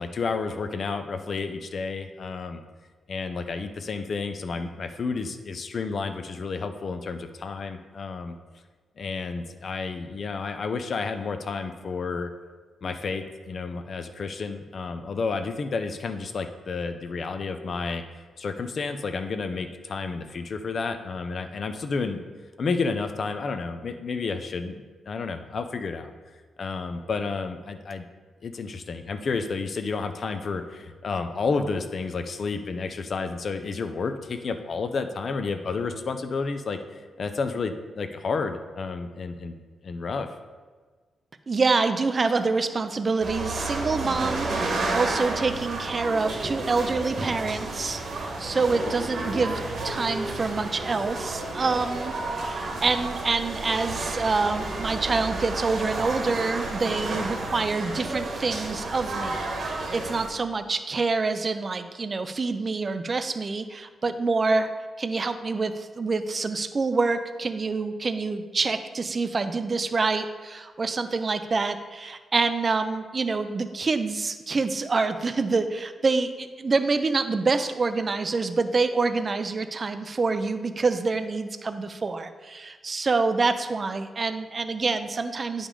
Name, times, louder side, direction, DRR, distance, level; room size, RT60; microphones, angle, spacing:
voice 1, 0.0-2.6 3.1-8.4 9.0-12.3 12.8-18.0 18.4-22.2 22.6-26.1 26.6-28.1 28.4-39.6 39.8-40.3, left 4 dB, 40° left, 8 dB, 0.5 m, -31 dB
voice 2, 41.5-64.7 65.0-85.7, right 4 dB, 30° right, 9 dB, 0.4 m, -26 dB
sound 1, 43.2-60.3, right 2 dB, 55° right, 1.3 m, -31 dB
9.8 x 5.1 x 3.7 m, 1.4 s
wide cardioid pair, 160°, 0 cm